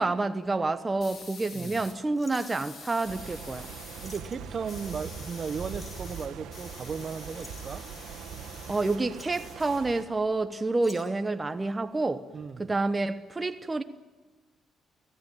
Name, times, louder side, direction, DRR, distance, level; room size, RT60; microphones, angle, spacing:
voice 1, 0.0-3.7 8.7-12.2 12.6-13.8, right 3 dB, 20° right, 9 dB, 1.0 m, -28 dB
sound 1, 1.0-2.0 2.3-4.2 4.5-9.0 9.3-10.3, left 4 dB, 50° left, 5.8 m, -47 dB
sound 2, 2.1-3.0 3.6-3.7 4.0-4.5 5.7-6.1 7.3-8.4 8.9-9.5 10.8-11.3 12.3-12.7 13.0-13.1, left 1 dB, 20° left, 5.4 m, -51 dB
sound 3, 3.0-10.0, right 7 dB, 85° right, 1.6 m, -42 dB
voice 2, 4.0-7.8 12.3-12.7, right 6 dB, 45° right, 13 dB, 1.2 m, -36 dB
25.0 x 17.0 x 9.1 m, 1.3 s
cardioid pair, 90°, 0 cm